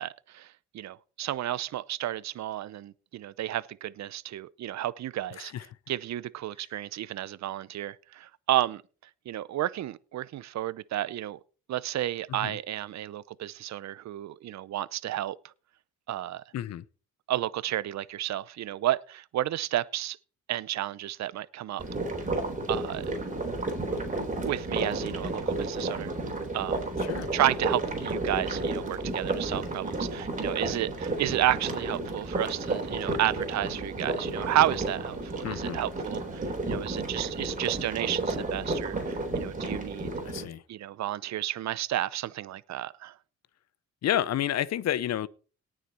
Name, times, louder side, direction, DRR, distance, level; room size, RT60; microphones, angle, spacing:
voice 1, 0.0-8.8 9.3-11.4 11.7-15.5 16.1-16.4 17.3-20.2 20.5-21.8 22.7-23.2 23.5-23.6 24.4-26.1 26.5-26.8 27.3-40.1 40.7-43.2, right 13 dB, 65° right, 0.7 m, -31 dB
voice 2, 16.5-16.8 27.1-27.3 35.4-35.8 40.2-40.6 44.0-45.3, left 11 dB, 60° left, 0.7 m, -30 dB
sound 1, 21.8-40.4, right 2 dB, 25° right, 3.7 m, -32 dB
18.5 x 6.5 x 4.3 m
cardioid pair, 90°, 30 cm